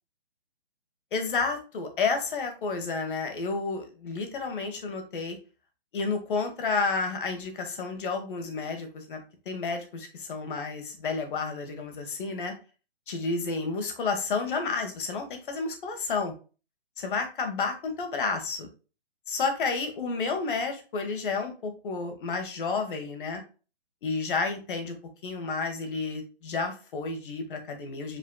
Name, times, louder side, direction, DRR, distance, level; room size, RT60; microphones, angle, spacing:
voice 1, 1.1-5.4 5.9-9.2 9.4-12.5 13.1-16.3 17.0-18.7 19.3-23.4 24.0-25.0 25.2-28.2, left 4 dB, 55° left, 6 dB, 1.4 m, -31 dB
5.2 x 4.1 x 2.2 m, 0.35 s
hypercardioid pair, 145°, 32 cm